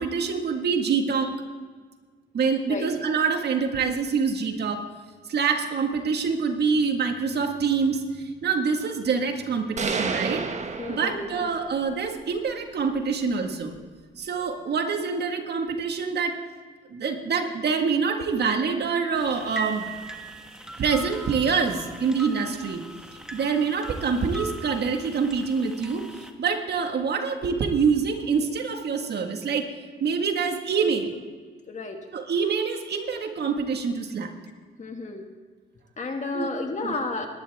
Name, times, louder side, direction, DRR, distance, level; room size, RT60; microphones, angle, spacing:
voice 1, 0.0-1.3 2.3-4.8 5.3-10.4 10.9-13.7 14.2-16.4 16.9-19.9 20.8-22.8 23.3-29.7 30.0-31.1 32.1-34.3 36.3-36.5 36.8-36.9, right 5 dB, 55° right, 5 dB, 1.8 m, -26 dB
sound 1, 9.8-11.7, right 4 dB, 35° right, 1.3 m, -30 dB
voice 2, 10.8-11.5 31.7-32.0 34.8-35.3 36.0-37.3, left 3 dB, 35° left, 3 dB, 2.1 m, -32 dB
sound 2, 19.1-26.3, right 2 dB, 5° right, 1.5 m, -40 dB
21.0 x 11.0 x 3.6 m, 1.5 s
cardioid pair, 90°, 20 cm